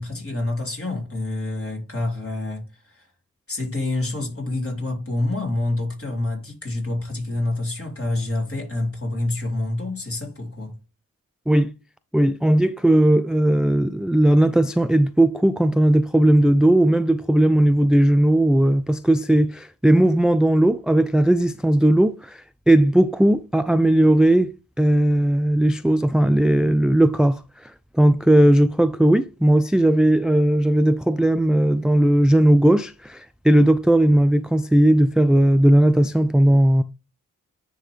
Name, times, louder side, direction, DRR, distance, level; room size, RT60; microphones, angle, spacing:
voice 1, 0.0-3.1 3.5-10.8, left 2 dB, 40° left, 3.6 m, -27 dB
voice 2, 12.1-27.4 28.0-36.8, right 1 dB, ahead, 0.4 m, -17 dB
9.9 x 3.9 x 3.2 m
cardioid pair, 50°, 35 cm